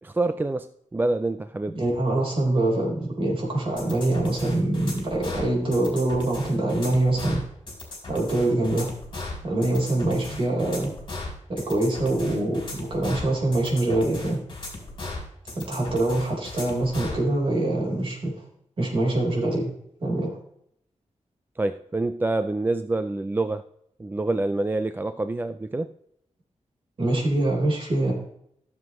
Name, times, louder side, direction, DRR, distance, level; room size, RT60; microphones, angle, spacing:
voice 1, 0.0-1.8 21.6-23.7 24.0-25.9, right 2 dB, 15° right, 0.3 m, -26 dB
voice 2, 1.7-7.4 8.1-8.9 9.4-10.9 11.5-14.4 15.5-18.3 18.8-19.6 20.0-20.3 27.0-28.1, right 2 dB, 45° right, 4.0 m, -24 dB
sound 1, 3.8-17.2, left 2 dB, 40° left, 3.4 m, -37 dB
14.5 x 7.3 x 3.0 m
wide cardioid pair, 165°, 12 cm